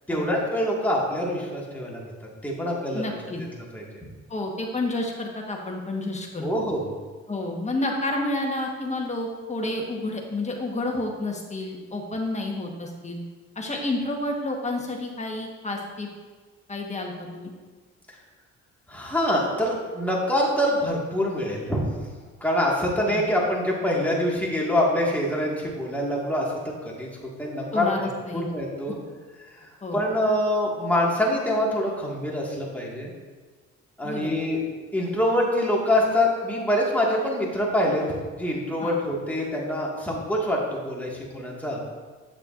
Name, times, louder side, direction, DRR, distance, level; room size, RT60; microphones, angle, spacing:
voice 1, 0.1-2.0 2.4-3.1 3.4-3.5 3.7-3.8 6.4-6.9 18.9-21.8 22.4-26.5 26.8-27.1 27.4-27.9 28.3-29.0 29.6-33.1 34.0-34.6 34.9-38.0 38.4-41.8, left 1 dB, 5° left, -4 dB, 1.8 m, -25 dB
voice 2, 2.9-3.4 4.3-6.5 7.3-13.2 13.5-16.1 16.7-17.5 23.1-23.2 27.7-28.5 29.8-30.0 34.0-34.3 38.8-39.0, left 2 dB, 25° left, 0 dB, 1.3 m, -30 dB
8.4 x 6.6 x 2.5 m, 1.4 s
cardioid pair, 90°, 30 cm